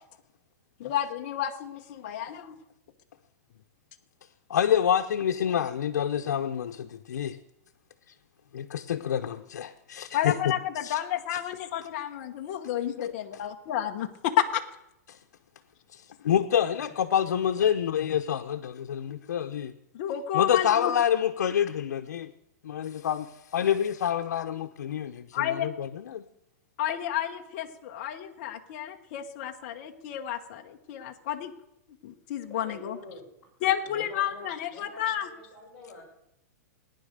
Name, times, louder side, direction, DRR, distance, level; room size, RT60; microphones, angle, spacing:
voice 1, 0.8-2.6 10.1-14.6 19.9-20.9 25.3-25.7 26.8-31.5 32.0-33.0 33.6-35.3, left 11 dB, 40° left, 3 dB, 1.0 m, -31 dB
voice 2, 4.5-7.4 8.5-10.5 10.8-11.0 11.3-11.4 13.0-13.1 15.1-15.2 15.9-19.7 20.3-22.3 22.6-26.2, left 9 dB, 85° left, 4 dB, 0.9 m, -27 dB
voice 3, 32.5-33.3 33.8-36.0, left 2 dB, 10° left, -5 dB, 5.3 m, -46 dB
18.5 x 10.5 x 6.7 m, 0.83 s
supercardioid pair, 170°, 9 cm